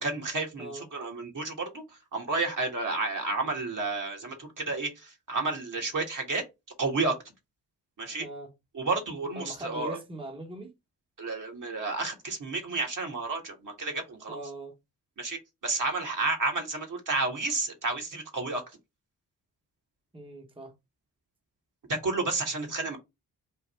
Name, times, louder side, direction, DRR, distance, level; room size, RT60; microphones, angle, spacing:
voice 1, 0.0-1.8 2.1-6.4 6.8-7.2 8.0-8.3 8.7-10.0 11.2-14.4 15.2-18.6 21.9-23.0, right 3 dB, 45° right, 1.6 m, -31 dB
voice 2, 8.2-8.5 9.3-10.7 14.3-14.8 20.1-20.7, right 2 dB, 10° right, 1.1 m, -41 dB
3.6 x 2.6 x 4.3 m
hypercardioid pair, 40°, 43 cm